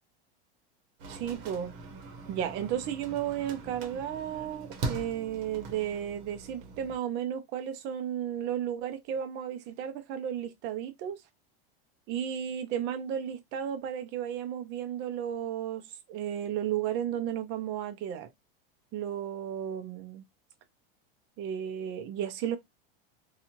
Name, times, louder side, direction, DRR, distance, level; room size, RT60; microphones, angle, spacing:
sound 1, 1.0-7.0, right 3 dB, 55° right, 1.0 m, -41 dB
voice 1, 1.1-1.7 2.3-11.2 12.1-15.8 16.1-18.3 18.9-20.2 21.4-22.6, right 9 dB, 40° right, 0.6 m, -33 dB
2.7 x 2.4 x 2.8 m
supercardioid pair, 140°, 29 cm